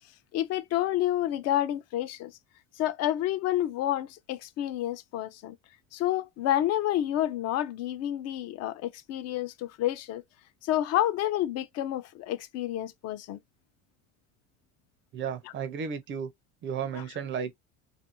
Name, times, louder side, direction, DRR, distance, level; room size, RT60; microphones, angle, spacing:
voice 1, 0.3-2.3 2.8-5.6 5.9-10.2 10.6-13.4 17.0-17.1, left 12 dB, 55° left, 0.5 m, -29 dB
voice 2, 15.1-16.3 16.6-17.5, right 7 dB, 40° right, 0.5 m, -33 dB
2.7 x 2.5 x 2.8 m
supercardioid pair, 110°, 31 cm